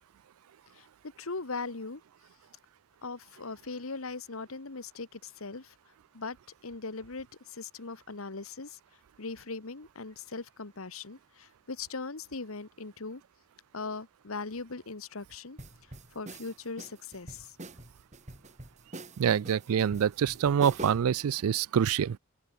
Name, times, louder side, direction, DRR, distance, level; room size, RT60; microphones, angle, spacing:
voice 1, 1.2-2.0 3.0-5.7 6.1-6.4 6.6-8.8 9.2-13.2 13.7-15.6 16.1-17.6, left 3 dB, 75° left, 1.4 m, -39 dB
sound 1, 15.6-21.2, right 2 dB, 35° right, 2.3 m, -45 dB
voice 2, 19.2-22.2, right 8 dB, 85° right, 0.4 m, -26 dB
head